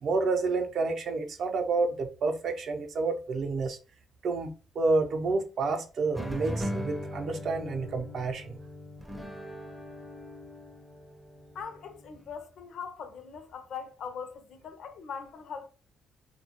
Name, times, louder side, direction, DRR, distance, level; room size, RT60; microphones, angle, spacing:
voice 1, 0.0-3.8 4.2-8.6, right 3 dB, 60° right, 0.5 m, -29 dB
sound 1, 6.1-12.3, equal, 5° right, 0.4 m, -39 dB
voice 2, 11.5-15.7, left 6 dB, 70° left, 0.5 m, -41 dB
2.2 x 2.1 x 2.8 m
cardioid pair, 90°, 0 cm